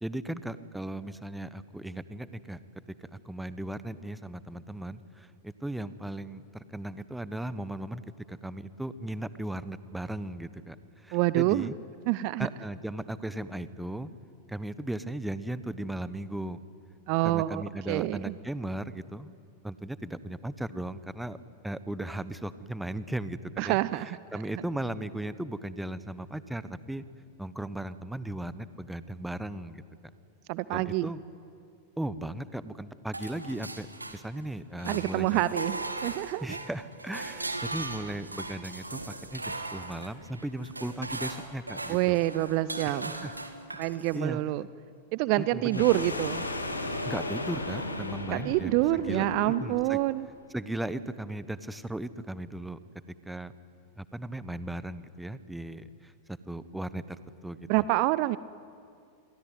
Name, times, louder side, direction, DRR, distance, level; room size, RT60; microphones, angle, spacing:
voice 1, 0.0-2.6 3.0-8.0 8.3-11.7 12.4-14.1 14.5-16.6 17.2-19.3 19.6-21.4 21.6-23.8 24.0-27.0 27.4-29.8 30.7-31.2 32.0-33.9 34.1-35.4 36.4-42.2 42.9-43.3 44.1-44.4 45.4-45.8 47.0-50.0 50.5-52.8 53.2-53.5 54.0-57.8, right 1 dB, 5° right, 14 dB, 1.2 m, -37 dB
voice 2, 11.1-11.7 12.1-12.5 17.1-18.4 23.6-24.2 30.5-31.1 34.9-36.6 41.9-43.3 43.8-44.6 45.1-46.4 48.3-50.3 57.7-58.4, right 17 dB, 45° right, 18 dB, 0.6 m, -27 dB
sound 1, 33.1-34.5 34.8-44.2, right 2 dB, 85° right, 1.9 m, -38 dB
sound 2, 45.7-50.0, left 1 dB, 80° left, 2.8 m, -35 dB
27.0 x 22.0 x 9.1 m, 2.3 s
figure-of-eight pair, 90°, 0 cm